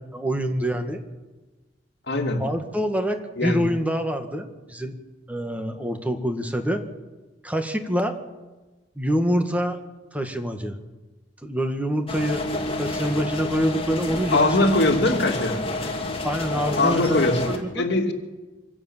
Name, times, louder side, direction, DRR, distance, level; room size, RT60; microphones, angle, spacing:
voice 1, 0.1-1.0 2.4-5.0 5.3-6.8 7.4-8.2 9.0-9.8 10.1-10.8 11.4-12.4 12.8-14.6 16.2-17.9, equal, 10° right, 6 dB, 1.8 m, -26 dB
voice 2, 2.1-2.4 3.4-3.6 14.3-15.6 16.8-17.4 17.8-18.1, left 2 dB, 65° left, 4 dB, 2.7 m, -21 dB
sound 1, 12.1-17.6, left 2 dB, 30° left, 2.8 m, -29 dB
25.0 x 16.0 x 7.4 m, 1.2 s
head